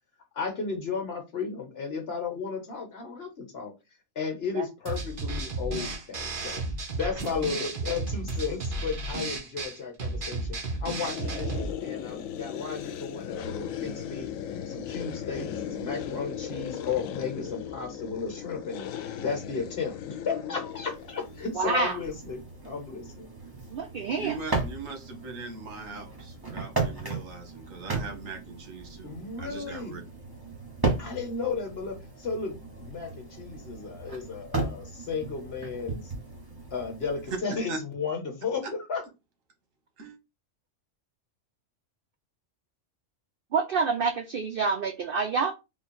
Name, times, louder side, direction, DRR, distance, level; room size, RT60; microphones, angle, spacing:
voice 1, 0.3-3.7 4.1-6.6 6.9-14.3 14.7-22.4 22.6-23.3 29.0-30.0 31.0-36.1 36.7-39.0, left 5 dB, 55° left, 1.3 m, -34 dB
sound 1, 4.9-11.7, right 2 dB, 45° right, 1.0 m, -33 dB
sound 2, 11.0-21.5, left 9 dB, 90° left, 1.0 m, -37 dB
sound 3, 20.8-37.4, right 3 dB, 20° right, 1.0 m, -36 dB
voice 2, 21.6-22.0 23.7-24.4 43.5-45.5, right 4 dB, 60° right, 0.6 m, -27 dB
voice 3, 24.2-30.0 37.5-37.8 38.6-38.7 40.0-40.2, right 4 dB, 85° right, 1.5 m, -40 dB
3.7 x 2.3 x 4.2 m
omnidirectional pair, 1.3 m